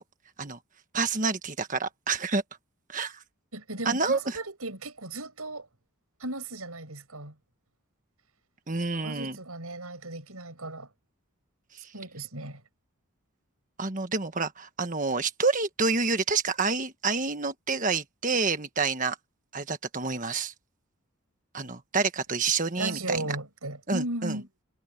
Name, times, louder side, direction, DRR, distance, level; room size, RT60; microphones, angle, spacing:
voice 1, 0.9-2.4 2.9-3.2 3.8-4.2 8.7-9.4 13.8-19.2 19.5-20.5 21.5-23.2 23.9-24.4, right 4 dB, 35° right, 1.5 m, -28 dB
voice 2, 3.5-5.7 6.2-7.4 8.9-10.9 11.9-12.6 22.8-24.5, right 2 dB, 80° right, 6.9 m, -36 dB
head